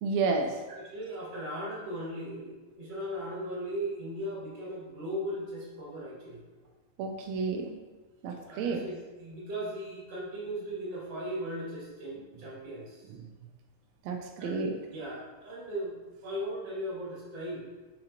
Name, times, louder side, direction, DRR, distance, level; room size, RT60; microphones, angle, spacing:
voice 1, 0.0-0.5 7.0-7.8 8.2-8.8 14.1-14.7, right 4 dB, 80° right, 3 dB, 1.6 m, -30 dB
voice 2, 0.7-6.4 8.4-13.1 14.4-14.6 14.9-16.0 16.2-17.7, equal, 50° right, -7 dB, 3.2 m, -38 dB
8.8 x 5.4 x 2.9 m, 1.3 s
omnidirectional pair, 3.6 m